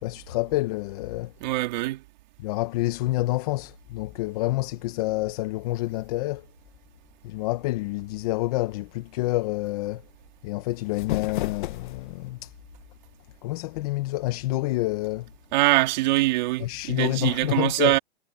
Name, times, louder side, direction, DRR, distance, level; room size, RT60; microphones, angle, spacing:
voice 1, 0.0-1.3 2.4-6.5 7.2-10.0 10.4-12.5 13.4-15.3 16.6-17.9, left 18 dB, 40° left, 1.0 m, -28 dB
voice 2, 1.4-2.0 15.5-18.0, right 18 dB, 45° right, 2.7 m, -23 dB
sound 1, 10.7-12.3, left 15 dB, 55° left, 0.8 m, -33 dB
hypercardioid pair, 155°, 30 cm